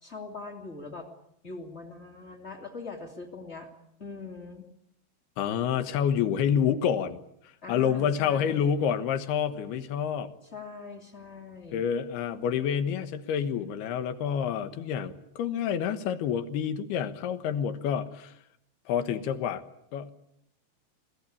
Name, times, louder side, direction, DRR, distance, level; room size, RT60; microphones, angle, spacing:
voice 1, 0.0-1.1 1.4-3.7 4.0-4.7 7.6-8.8 10.5-11.8, left 4 dB, 20° left, 4 dB, 2.2 m, -42 dB
voice 2, 5.4-7.2 7.7-10.3 11.7-18.3 18.9-19.6 19.9-20.1, left 8 dB, 75° left, 11 dB, 3.2 m, -28 dB
26.5 x 18.5 x 8.6 m, 0.76 s
omnidirectional pair, 4.8 m